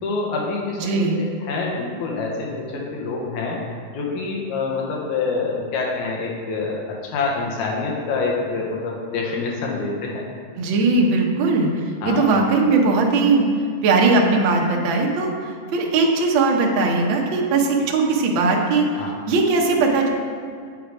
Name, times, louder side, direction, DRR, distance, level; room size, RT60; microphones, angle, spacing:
voice 1, 0.0-3.6 3.9-10.2 12.0-12.3 19.0-19.1, left 4 dB, 85° left, -3 dB, 2.4 m, -26 dB
voice 2, 0.8-1.3 10.6-13.5 13.8-18.9 19.3-20.1, right 3 dB, 70° right, 0 dB, 1.2 m, -19 dB
8.6 x 5.2 x 4.7 m, 2.2 s
omnidirectional pair, 3.4 m